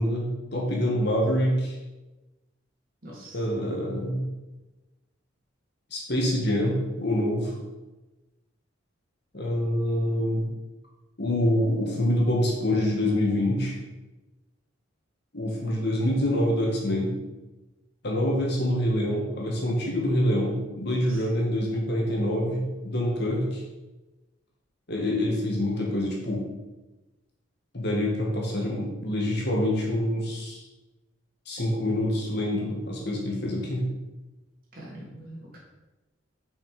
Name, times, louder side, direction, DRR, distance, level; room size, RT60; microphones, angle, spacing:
voice 1, 0.0-1.8 3.3-4.2 5.9-7.6 9.3-10.5 11.2-13.7 15.3-17.1 18.0-23.6 24.9-26.5 27.7-30.6 31.5-33.8, left 1 dB, 55° left, -2 dB, 1.9 m, -26 dB
voice 2, 3.0-3.4 21.0-21.2 34.7-35.6, right 1 dB, 45° right, -5 dB, 2.9 m, -43 dB
6.4 x 5.7 x 5.1 m, 1.1 s
head